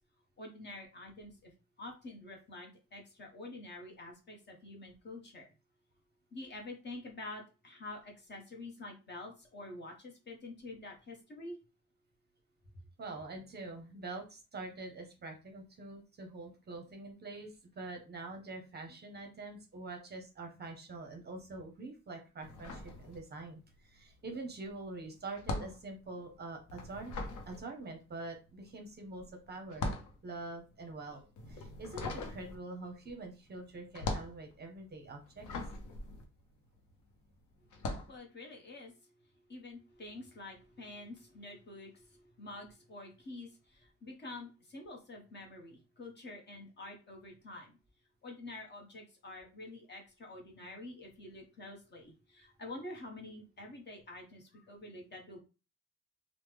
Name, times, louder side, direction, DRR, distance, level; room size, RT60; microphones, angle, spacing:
voice 1, 0.4-1.5 1.8-5.5 6.3-11.6 38.1-38.9 39.5-47.7 48.2-55.4, left 2 dB, 35° left, 1 dB, 0.9 m, -48 dB
voice 2, 13.0-27.1 27.5-29.9 30.2-35.5, right 2 dB, 35° right, 4 dB, 0.6 m, -45 dB
sound 1, 22.4-23.7 23.9-37.1 37.7-38.2, left 2 dB, 80° left, 0.7 m, -41 dB
3.0 x 2.0 x 3.3 m, 0.31 s
cardioid pair, 140°, 30 cm